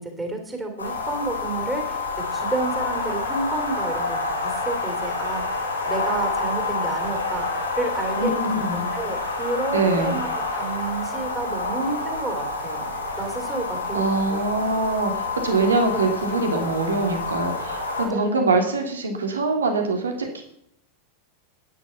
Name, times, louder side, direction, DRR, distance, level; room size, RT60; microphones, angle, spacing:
voice 1, 0.0-12.9 13.2-14.4 18.1-18.7, right 2 dB, 15° right, 4 dB, 2.9 m, -31 dB
sound 1, 0.8-18.1, left 3 dB, 75° left, 4.0 m, -28 dB
voice 2, 8.2-8.9 9.7-10.2 13.9-20.4, right 3 dB, 70° right, 4 dB, 2.6 m, -23 dB
12.0 x 9.6 x 5.6 m, 0.74 s
figure-of-eight pair, 90°, 0 cm